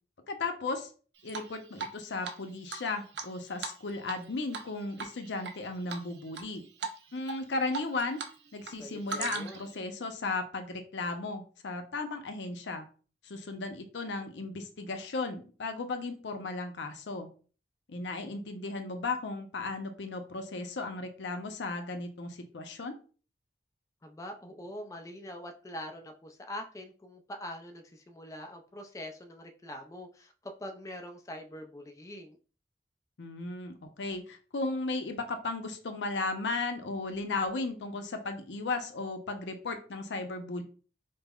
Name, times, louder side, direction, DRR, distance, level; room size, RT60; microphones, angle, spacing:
voice 1, 0.3-0.9 1.2-6.6 7.1-8.2 8.5-12.9 13.2-17.3 17.9-22.9 33.2-40.6, left 3 dB, 90° left, 6 dB, 0.6 m, -35 dB
Drip, 1.3-2.0 2.2-2.3 2.7-4.2 4.5-4.7 5.0-5.5 5.9-6.4 6.8-7.0 7.3-8.3 8.6-9.7, right 5 dB, 75° right, 0.5 m, -38 dB
voice 2, 8.8-9.6 24.0-32.4, left 1 dB, 20° left, 4 dB, 0.3 m, -44 dB
5.2 x 2.0 x 2.3 m, 0.38 s
head